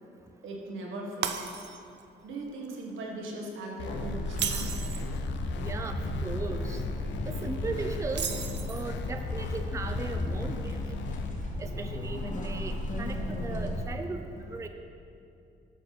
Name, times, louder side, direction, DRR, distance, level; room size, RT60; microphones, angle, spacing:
voice 1, 0.4-1.5 2.2-4.7, right 2 dB, 80° right, -1 dB, 1.7 m, -39 dB
Shatter, 1.2-2.0 2.4-2.7 4.3-5.1 8.1-9.0, right 8 dB, 60° right, 0.7 m, -34 dB
sound 1, 3.8-11.3, left 5 dB, 65° left, 0.6 m, -40 dB
sound 2, 3.8-13.9, left 1 dB, 40° left, 1.3 m, -34 dB
voice 2, 5.6-6.8 7.3-8.4 8.7-10.8 11.6-14.7, right 3 dB, 15° right, 6 dB, 0.5 m, -37 dB
9.0 x 6.2 x 5.8 m, 2.7 s
cardioid pair, 90°, 20 cm